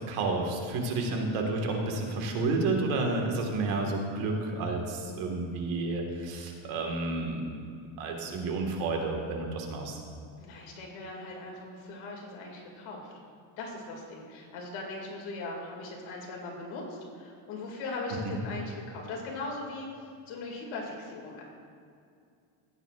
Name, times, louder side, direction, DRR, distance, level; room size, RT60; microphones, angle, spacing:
voice 1, 0.1-7.7 8.0-10.0 18.2-18.4, right 3 dB, 80° right, 2 dB, 1.8 m, -31 dB
voice 2, 10.4-13.1 13.6-19.9 20.3-21.4, left 3 dB, 75° left, -1 dB, 2.4 m, -39 dB
15.5 x 9.1 x 2.4 m, 2.4 s
cardioid pair, 145°, 49 cm